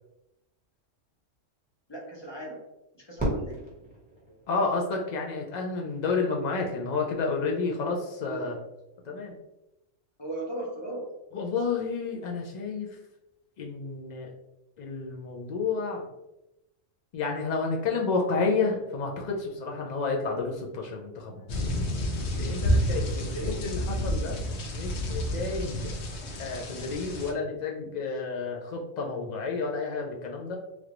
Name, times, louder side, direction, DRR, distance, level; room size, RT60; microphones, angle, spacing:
voice 1, 1.9-2.6 3.0-3.6 4.3-4.4 8.2-8.6 10.2-11.1 23.3-23.6, right 1 dB, 30° left, -3 dB, 0.5 m, -37 dB
Fireworks, 3.2-5.4, right 1 dB, 5° right, 1.0 m, -34 dB
voice 2, 4.5-8.5 9.0-9.3 11.3-13.0 13.6-14.3 14.8-16.1 17.1-21.6 22.3-24.4 24.7-26.0 26.4-30.6, left 4 dB, 90° left, 0 dB, 0.3 m, -30 dB
sound 1, 21.5-27.3, equal, 65° left, 0.8 m, -29 dB
3.4 x 2.4 x 2.9 m, 0.92 s
omnidirectional pair, 1.3 m